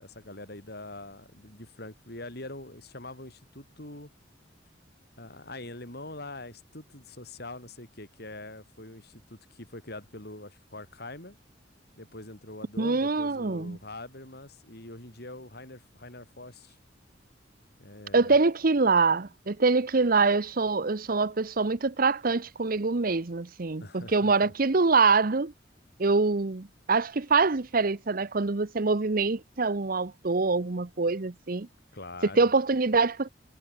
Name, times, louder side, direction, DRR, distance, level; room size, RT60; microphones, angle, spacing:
voice 1, 0.0-4.1 5.2-11.4 12.0-16.8 17.8-18.4 23.8-24.5 31.9-32.5, left 2 dB, 60° left, 6.8 m, -44 dB
voice 2, 12.8-13.8 18.1-25.5 26.0-31.7 32.3-33.3, right 4 dB, 50° right, 0.9 m, -25 dB
head